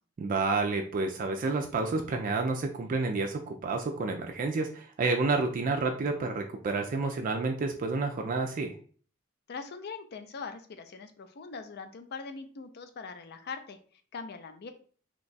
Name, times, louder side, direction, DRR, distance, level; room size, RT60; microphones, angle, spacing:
voice 1, 0.2-8.7, right 3 dB, 40° right, 4 dB, 0.3 m, -30 dB
voice 2, 9.5-14.7, left 4 dB, 50° left, 8 dB, 0.5 m, -42 dB
2.9 x 2.3 x 3.9 m, 0.43 s
head